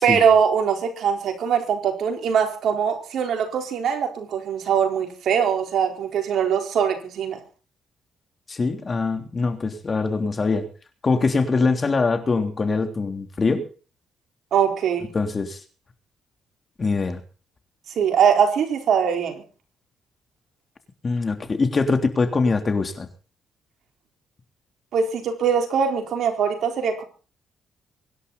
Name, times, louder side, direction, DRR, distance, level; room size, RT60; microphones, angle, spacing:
voice 1, 0.0-7.4 14.5-15.1 18.0-19.4 24.9-27.0, right 7 dB, 70° right, 4 dB, 4.3 m, -22 dB
voice 2, 8.5-10.7 11.0-13.6 15.1-15.6 16.8-17.2 21.0-23.1, left 4 dB, 35° left, 7 dB, 3.3 m, -23 dB
24.5 x 11.0 x 4.2 m, 0.38 s
cardioid pair, 90°, 0 cm